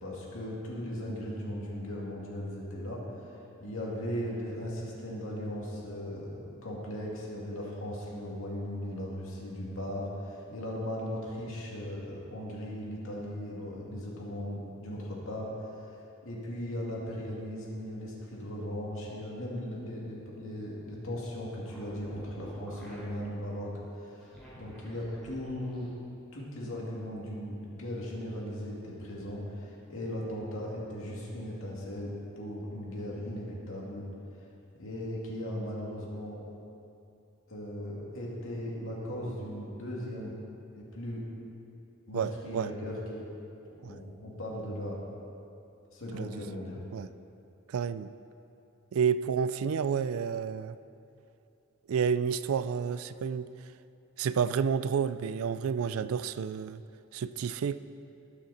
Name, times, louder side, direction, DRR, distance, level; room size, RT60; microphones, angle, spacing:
voice 1, 0.0-3.0 3.6-15.5 16.2-23.7 24.0-24.3 24.5-25.9 26.3-34.1 34.8-36.4 37.5-40.3 40.7-41.3 42.1-43.3 43.8-45.0 45.9-46.8, equal, 65° left, -4 dB, 2.4 m, -38 dB
sound 1, 21.7-23.2 24.1-25.9, equal, ahead, 3.1 m, -50 dB
voice 2, 42.1-42.7 43.8-43.9 46.1-46.3 46.9-47.1 47.7-48.1 48.9-50.8 51.9-53.5 54.2-56.8 57.1-57.8, right 7 dB, 70° right, 14 dB, 0.4 m, -30 dB
19.0 x 6.5 x 4.3 m, 2.7 s
head